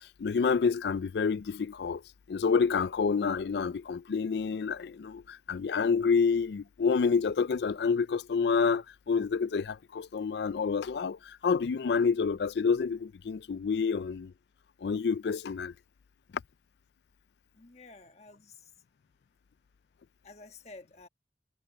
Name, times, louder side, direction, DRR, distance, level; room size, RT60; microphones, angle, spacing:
voice 1, 0.0-2.0 2.3-14.3 14.8-15.7, left 5 dB, 70° left, 0.4 m, -28 dB
voice 2, 17.5-18.7 20.2-21.1, left 3 dB, 40° left, 1.6 m, -51 dB
head